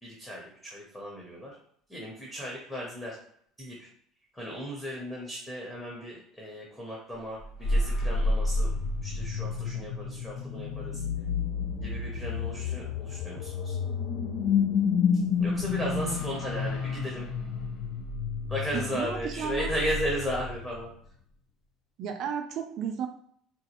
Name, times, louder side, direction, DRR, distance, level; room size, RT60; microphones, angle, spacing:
voice 1, 0.0-1.5 1.9-3.2 3.6-3.9 4.3-8.7 9.0-11.0 11.7-13.8 15.4-17.3 18.5-20.9, equal, 10° left, -3 dB, 0.6 m, -35 dB
sound 1, 7.4-20.9, left 4 dB, 55° left, 0.4 m, -30 dB
voice 2, 15.8-16.2 18.7-19.7 22.0-23.1, right 7 dB, 45° right, 6 dB, 0.4 m, -33 dB
3.9 x 2.2 x 2.9 m, 0.64 s
cardioid pair, 165°, 0 cm